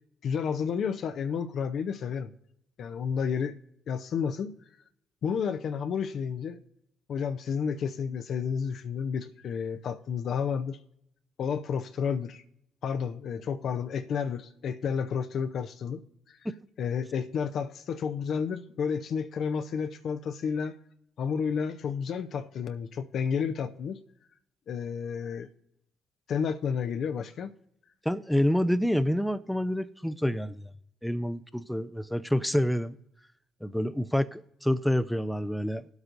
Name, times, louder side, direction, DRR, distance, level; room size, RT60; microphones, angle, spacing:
voice 1, 0.2-2.3 2.8-3.6 3.9-4.5 5.2-6.6 7.1-10.8 11.4-12.4 12.8-16.0 16.8-20.7 21.2-24.0 24.7-25.5 26.3-27.5, left 6 dB, 65° left, 0.7 m, -31 dB
voice 2, 28.1-30.7 31.0-33.0 33.6-35.9, equal, 5° left, 0.6 m, -28 dB
19.5 x 8.1 x 2.6 m
hypercardioid pair, 45°, 0 cm